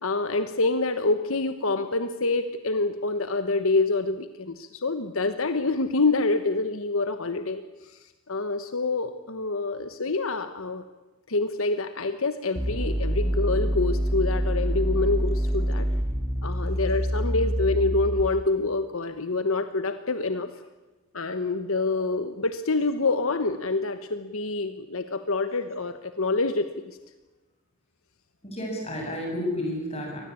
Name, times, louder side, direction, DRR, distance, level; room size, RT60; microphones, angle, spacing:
voice 1, 0.0-10.8 11.3-15.9 16.4-20.5 21.1-27.0, left 3 dB, 70° left, 10 dB, 1.2 m, -27 dB
sound 1, 12.6-18.5, equal, 5° right, 2.5 m, -26 dB
voice 2, 28.4-30.2, left 1 dB, 30° left, 1 dB, 7.5 m, -32 dB
24.0 x 19.5 x 8.5 m, 1.1 s
head